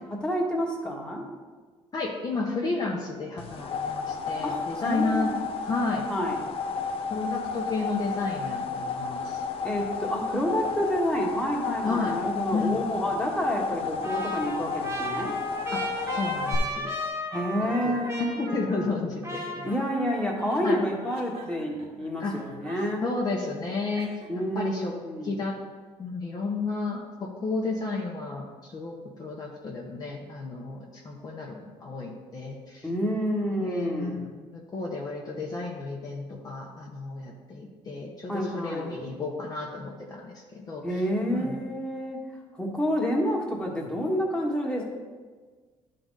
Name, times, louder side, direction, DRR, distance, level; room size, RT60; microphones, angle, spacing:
voice 1, 0.1-1.2 4.4-5.4 6.1-6.5 9.6-15.3 17.3-18.5 19.6-23.0 24.3-25.3 32.8-34.2 38.3-39.0 40.8-42.2 42.5-44.8, equal, 10° left, -2 dB, 1.4 m, -29 dB
voice 2, 1.9-5.3 5.6-6.0 7.1-9.4 11.8-12.2 12.5-13.0 15.7-16.9 17.6-18.0 18.4-19.7 20.6-20.8 22.2-22.4 23.0-24.1 24.5-24.9 25.2-25.6 26.0-32.9 33.6-41.0 41.3-41.5, left 3 dB, 35° left, -2 dB, 0.9 m, -32 dB
sound 1, 3.4-16.6, left 5 dB, 55° left, 0.5 m, -32 dB
Trumpet, 14.0-19.0 19.2-20.2, right 1 dB, 25° right, 1.2 m, -35 dB
Chuckle chortle, 19.3-24.6, right 2 dB, 80° right, 1.7 m, -47 dB
11.5 x 3.9 x 3.9 m, 1.4 s
cardioid pair, 120°, 11 cm